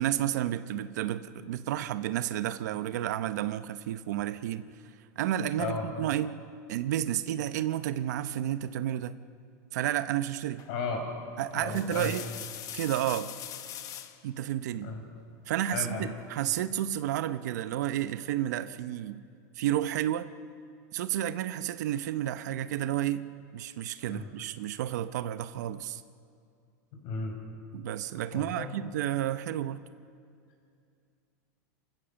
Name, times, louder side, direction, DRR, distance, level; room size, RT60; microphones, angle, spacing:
voice 1, 0.0-4.6 5.2-6.4 6.7-9.2 9.7-10.6 11.4-12.2 12.7-13.3 14.2-14.9 15.5-19.2 19.6-20.3 20.9-23.3 23.5-26.0 27.7-29.8, right 12 dB, 80° right, 12 dB, 0.8 m, -31 dB
sound 1, 10.6-10.9 11.5-14.2 15.7-16.3, left 11 dB, 40° left, 1.1 m, -42 dB
voice 2, 10.7-11.1 11.5-12.1 14.8-15.0 15.7-16.1 24.1-24.3 26.9-27.3 28.3-28.7, left 4 dB, 55° left, 2 dB, 5.9 m, -34 dB
26.5 x 15.0 x 7.1 m, 2.4 s
supercardioid pair, 135°, 9 cm